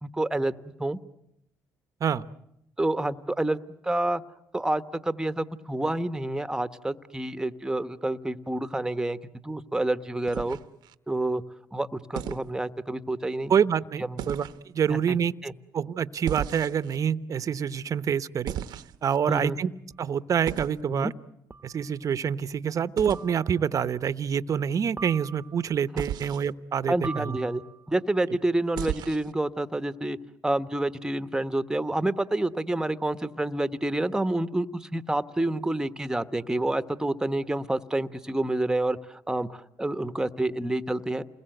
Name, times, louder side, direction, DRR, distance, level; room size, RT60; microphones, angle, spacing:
voice 1, 0.0-1.0 2.8-3.6 3.8-4.2 4.5-9.2 9.4-10.6 11.1-11.4 11.7-13.5 14.0-14.2 14.9-15.2 15.4-15.5 19.3-19.6 20.9-21.1 26.9-27.6 27.9-30.2 30.4-41.2, right 1 dB, 10° right, 11 dB, 1.2 m, -28 dB
sound 1, 10.3-10.9 12.1-12.5 14.2-14.6 16.3-17.0 18.5-19.2 20.5-20.8 23.0-23.2 26.0-26.5 28.7-29.3, right 11 dB, 75° right, 1.0 m, -35 dB
voice 2, 13.5-14.4 14.7-15.3 15.7-18.5 19.0-19.7 20.0-21.1 21.6-27.4, right 7 dB, 50° right, 14 dB, 0.9 m, -26 dB
sound 2, 19.9-20.0 21.5-21.9 23.1-23.7 25.0-25.7 27.0-28.0, right 4 dB, 25° right, 1.0 m, -42 dB
29.0 x 21.0 x 7.9 m, 0.81 s
cardioid pair, 80°, 7 cm